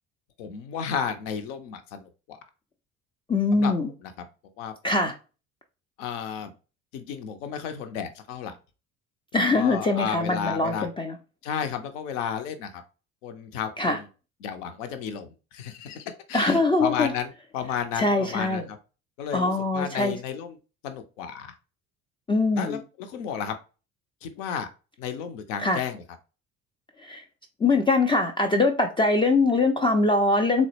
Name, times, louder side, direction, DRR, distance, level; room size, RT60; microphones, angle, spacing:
voice 1, 0.4-2.4 3.5-3.7 4.0-4.3 4.6-4.7 5.0-5.1 6.0-6.5 6.9-8.5 9.5-10.9 11.4-12.8 13.2-14.1 14.4-18.8 19.2-20.6 20.8-21.5 22.5-23.5 24.2-24.7 25.0-26.0, left 7 dB, 65° left, 0.7 m, -33 dB
voice 2, 3.3-3.9 4.8-5.1 9.3-11.2 13.8-14.0 16.3-17.1 18.0-18.6 19.3-20.2 22.3-22.8 25.6-25.8 27.0-27.2 27.6-30.7, left 3 dB, 15° left, 0.3 m, -22 dB
3.8 x 2.0 x 2.9 m
figure-of-eight pair, 55°, 41 cm